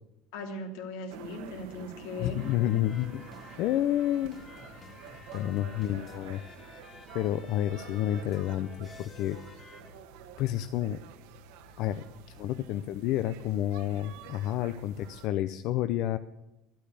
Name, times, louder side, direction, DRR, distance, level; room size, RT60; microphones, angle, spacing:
voice 1, 0.3-2.9 7.2-7.4, left 2 dB, 85° left, 3 dB, 3.2 m, -39 dB
sound 1, 1.1-15.3, right 7 dB, 85° right, 1.5 m, -49 dB
voice 2, 2.2-3.2 3.6-4.4 5.3-6.4 7.1-9.4 10.4-11.0 11.8-12.0 12.4-16.2, left 12 dB, 60° left, 11 dB, 0.6 m, -29 dB
sound 2, 2.4-9.9, left 4 dB, 25° left, 2.6 m, -51 dB
12.0 x 11.5 x 8.2 m, 0.93 s
cardioid pair, 150°, 0 cm